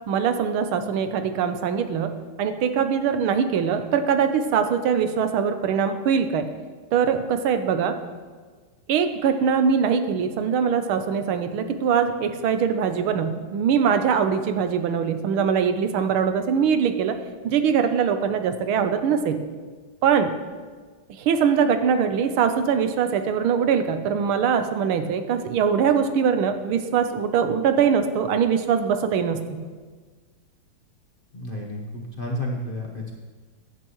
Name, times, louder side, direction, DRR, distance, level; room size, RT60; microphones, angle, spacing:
voice 1, 0.1-2.1 2.4-6.5 6.9-7.9 8.9-17.2 17.4-19.4 20.0-20.3 21.1-29.4, right 7 dB, 85° right, 8 dB, 1.6 m, -22 dB
voice 2, 31.3-33.1, left 1 dB, 35° left, -1 dB, 1.0 m, -31 dB
15.5 x 10.5 x 3.1 m, 1.4 s
omnidirectional pair, 2.2 m